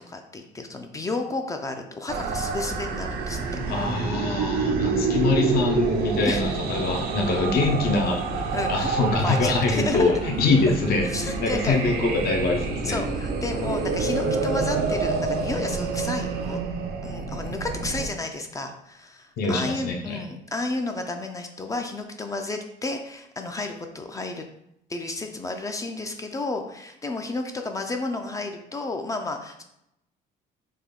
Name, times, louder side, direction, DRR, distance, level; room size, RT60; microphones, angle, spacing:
voice 1, 0.1-3.4 3.7-4.0 6.2-6.6 8.5-10.1 11.0-11.8 12.8-16.6 17.0-24.4 24.9-29.6, left 2 dB, 20° left, 4 dB, 0.3 m, -32 dB
sound 1, 2.1-18.1, right 4 dB, 65° right, 0.5 m, -28 dB
voice 2, 3.7-13.0 19.4-20.2, left 3 dB, 65° left, 2 dB, 0.7 m, -24 dB
3.4 x 2.2 x 3.6 m, 0.80 s
cardioid pair, 110°, 17 cm